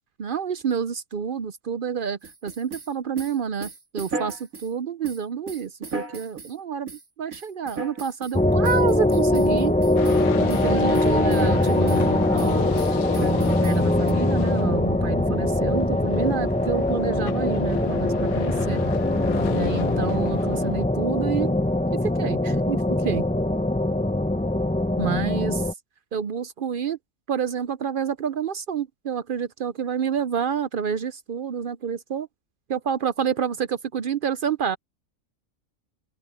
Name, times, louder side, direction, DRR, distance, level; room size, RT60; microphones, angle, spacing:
voice 1, 0.2-6.9 7.2-9.8 10.4-12.8 13.1-18.8 19.5-21.5 21.9-23.2 25.0-25.6 26.1-27.0 27.3-32.3 32.7-34.8, right 7 dB, 55° right, 0.6 m, -29 dB
sound 1, 2.2-4.7 5.0-6.5 6.9-7.0 7.3-8.4 8.6-10.2 10.5-10.7 10.9-12.1 12.4-14.1, right 4 dB, 75° right, 3.1 m, -36 dB
sound 2, 8.3-25.7, left 1 dB, 10° left, 0.6 m, -22 dB
sound 3, 10.0-20.9, left 12 dB, 85° left, 1.1 m, -33 dB
open air
omnidirectional pair, 1.5 m